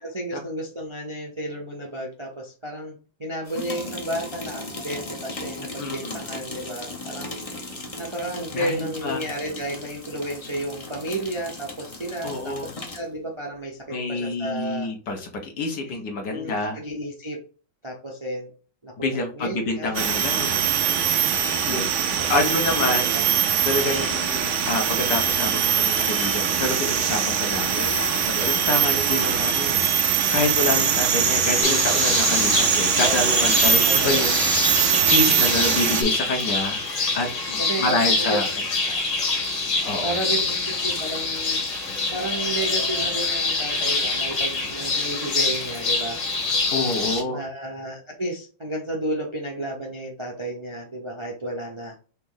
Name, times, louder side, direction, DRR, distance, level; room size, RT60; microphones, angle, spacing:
voice 1, 0.0-7.4 8.0-14.9 15.9-16.0 16.2-17.4 17.8-18.5 18.8-20.1 20.7-21.2 22.2-23.3 27.6-28.1 33.0-33.5 33.8-34.3 37.6-38.4 40.0-41.6 42.1-46.2 47.2-51.9, right 1 dB, 30° right, -1 dB, 0.6 m, -32 dB
sound 1, 3.5-13.1, left 2 dB, 30° left, 0.6 m, -37 dB
voice 2, 5.8-6.2 8.5-9.3 12.2-12.7 13.9-16.8 19.0-20.7 21.7-23.1 23.6-27.9 28.2-36.8 37.1-38.5 38.9-39.0 39.8-40.2 46.7-47.4, left 2 dB, 70° left, 3 dB, 1.6 m, -27 dB
sound 2, 19.9-36.0, right 7 dB, 65° right, 0.8 m, -22 dB
sound 3, 31.6-47.2, left 3 dB, 85° left, 2.1 m, -25 dB
4.1 x 3.0 x 3.8 m, 0.37 s
omnidirectional pair, 1.9 m